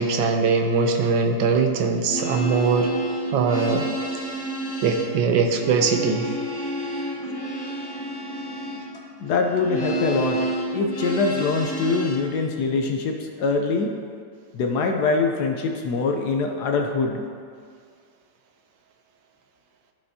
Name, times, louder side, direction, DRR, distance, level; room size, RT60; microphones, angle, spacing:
voice 1, 0.0-2.9 3.3-3.9 4.8-6.3, right 5 dB, 80° right, 5 dB, 1.3 m, -21 dB
sound 1, 2.0-12.2, right 1 dB, 20° left, 0.7 m, -30 dB
voice 2, 9.2-14.0 14.5-17.2, left 4 dB, 70° left, 3 dB, 1.0 m, -24 dB
14.5 x 5.0 x 2.7 m, 2.2 s
omnidirectional pair, 2.1 m